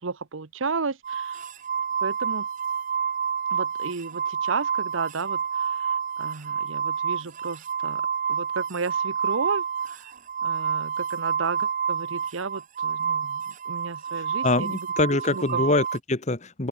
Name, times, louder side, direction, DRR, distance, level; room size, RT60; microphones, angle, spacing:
voice 1, 0.0-1.4 2.0-2.5 3.5-10.1 10.4-14.9 15.3-15.6, right 4 dB, 75° right, 0.9 m, -33 dB
sound 1, 1.0-16.0, right 7 dB, 40° right, 0.7 m, -29 dB
voice 2, 14.1-16.7, left 2 dB, 35° left, 1.6 m, -25 dB
open air
head